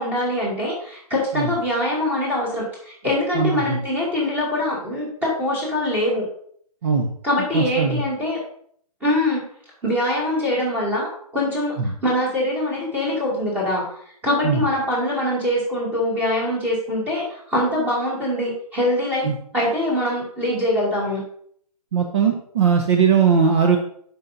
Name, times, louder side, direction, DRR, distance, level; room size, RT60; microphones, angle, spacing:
voice 1, 0.0-6.3 7.2-8.4 9.0-9.4 9.8-11.7 12.0-13.8 14.2-19.3 19.5-21.2, left 1 dB, 10° right, -5 dB, 2.3 m, -23 dB
voice 2, 7.5-8.0 14.4-14.6 19.2-19.3 21.9-23.8, right 6 dB, 45° right, 2 dB, 0.9 m, -19 dB
11.5 x 5.5 x 2.6 m, 0.63 s
hypercardioid pair, 160°, 20 cm